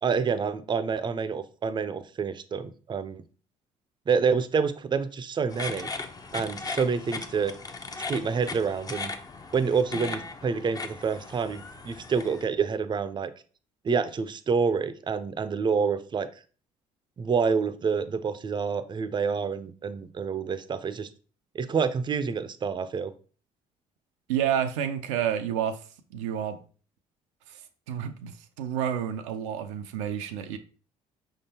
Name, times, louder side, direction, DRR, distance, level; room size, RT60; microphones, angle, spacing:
voice 1, 0.0-3.2 4.1-5.9 6.3-7.5 8.1-9.1 9.5-13.3 13.8-16.3 17.2-21.1 21.5-23.1, right 5 dB, 30° right, 0.5 m, -27 dB
sound 1, 5.5-12.4, left 3 dB, 25° left, 0.6 m, -38 dB
voice 2, 24.3-25.8 26.1-26.6 27.5-27.6 27.9-30.6, right 9 dB, 85° right, 0.4 m, -29 dB
5.1 x 3.6 x 2.8 m
hypercardioid pair, 60°, 16 cm